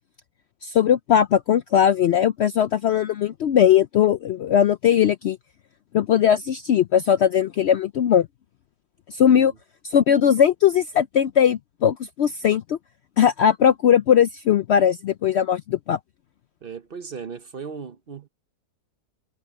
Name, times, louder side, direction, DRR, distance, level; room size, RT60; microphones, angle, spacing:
voice 1, 0.6-5.4 5.9-8.3 9.1-9.5 9.8-12.8 13.2-16.0, left 9 dB, 85° left, 0.5 m, -19 dB
voice 2, 16.6-18.3, right 6 dB, 45° right, 0.8 m, -37 dB
omnidirectional pair, 1.7 m